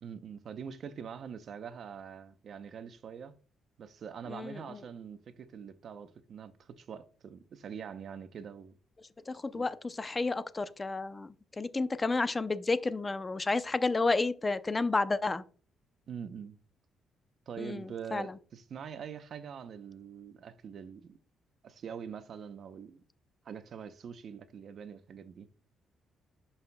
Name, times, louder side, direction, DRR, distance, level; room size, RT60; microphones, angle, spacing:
voice 1, 0.0-3.3 3.8-8.8 9.5-9.6 16.1-16.6 17.5-21.2 21.6-23.0 23.4-25.5, right 7 dB, 60° right, 0.7 m, -44 dB
voice 2, 4.3-4.8 9.3-15.4 17.6-18.3, left 3 dB, 25° left, 0.6 m, -31 dB
11.0 x 5.6 x 2.3 m
cardioid pair, 90°, 0 cm